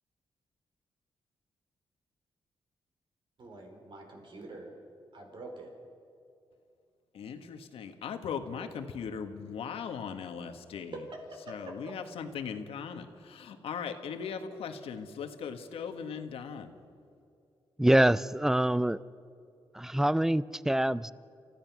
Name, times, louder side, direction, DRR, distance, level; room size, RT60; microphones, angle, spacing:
voice 1, 3.4-4.7 5.1-5.7 10.9-11.9, right 2 dB, 55° right, 2 dB, 4.6 m, -45 dB
voice 2, 7.1-10.9 11.5-16.8, left 6 dB, 90° left, 7 dB, 1.6 m, -39 dB
voice 3, 17.8-19.0 19.7-21.1, right 1 dB, 5° right, 18 dB, 0.5 m, -25 dB
29.0 x 15.5 x 6.0 m, 2.5 s
cardioid pair, 105°, 10 cm